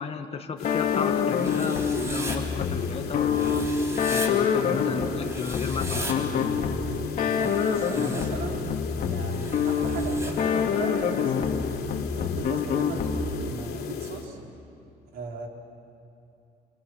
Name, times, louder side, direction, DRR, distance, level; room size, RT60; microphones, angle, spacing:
voice 1, 0.0-3.7 4.1-6.4, left 5 dB, 35° left, 5 dB, 1.6 m, -34 dB
sound 1, 0.6-14.3, left 8 dB, 70° left, 3.2 m, -36 dB
sound 2, 0.6-13.5, left 6 dB, 55° left, 2.4 m, -27 dB
Writing, 1.4-2.4 3.3-4.3 5.2-6.1 7.2-8.3 9.3-10.3, right 1 dB, 15° right, 4.0 m, -38 dB
voice 2, 4.7-5.0 7.4-11.3 12.1-14.4 15.1-15.5, right 4 dB, 65° right, 1 dB, 4.1 m, -37 dB
28.5 x 27.0 x 6.4 m, 2.8 s
cardioid pair, 110°, 17 cm